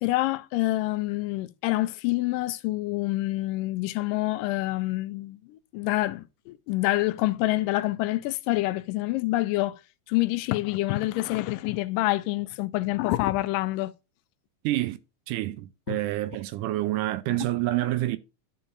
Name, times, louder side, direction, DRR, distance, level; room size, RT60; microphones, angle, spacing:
voice 1, 0.0-9.8 10.1-13.9 15.9-16.0, left 18 dB, 85° left, 2.2 m, -27 dB
voice 2, 14.6-15.0 15.3-18.2, right 16 dB, 80° right, 2.1 m, -28 dB
13.0 x 5.7 x 2.6 m
omnidirectional pair, 3.8 m